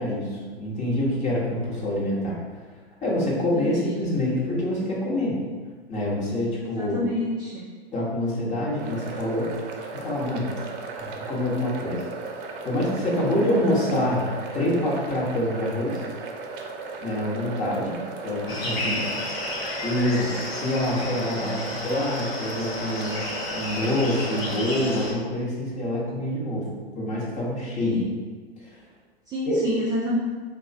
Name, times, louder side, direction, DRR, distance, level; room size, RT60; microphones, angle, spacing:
voice 1, 0.0-2.4 3.0-5.4 5.9-7.0 7.9-9.5 9.9-10.5 11.0-12.0 12.6-14.3 14.5-16.0 17.0-18.0 18.2-19.1 19.8-23.2 23.5-26.7 26.9-28.0 28.6-28.7 29.4-29.6, left 1 dB, 20° left, -5 dB, 1.1 m, -26 dB
voice 2, 3.5-3.9 6.6-7.7 27.9-28.0 29.3-30.2, equal, 15° right, -5 dB, 0.3 m, -28 dB
sound 1, 8.8-24.6, right 4 dB, 55° right, 0.6 m, -36 dB
sound 2, 18.5-25.1, left 2 dB, 70° left, 1.1 m, -32 dB
3.1 x 2.4 x 4.0 m, 1.5 s
hypercardioid pair, 110°, 32 cm